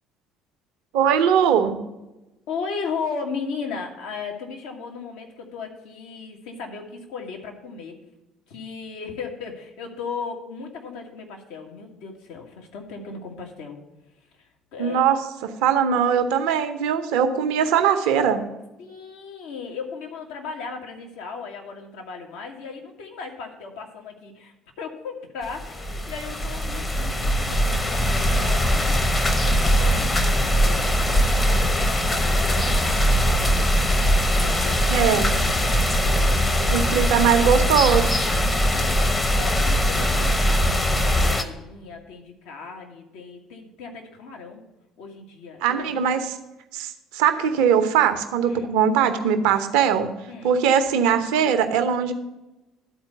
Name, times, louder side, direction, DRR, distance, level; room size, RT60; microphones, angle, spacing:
voice 1, 0.9-1.8 14.8-15.2 15.6-18.4 34.9-35.3 36.7-38.2 45.6-46.3 46.7-50.1 50.4-52.1, right 8 dB, 60° right, 8 dB, 0.8 m, -20 dB
voice 2, 2.5-8.0 8.5-13.8 14.4-15.2 18.8-29.1 29.4-33.8 34.2-35.7 36.1-37.1 38.7-39.0 39.3-44.6 45.0-46.1 48.4-48.7 50.3-50.5, left 5 dB, 65° left, 1 dB, 1.5 m, -36 dB
sound 1, 25.4-41.4, equal, 20° left, 1.1 m, -21 dB
11.5 x 4.4 x 6.7 m, 0.99 s
figure-of-eight pair, 55°, 0 cm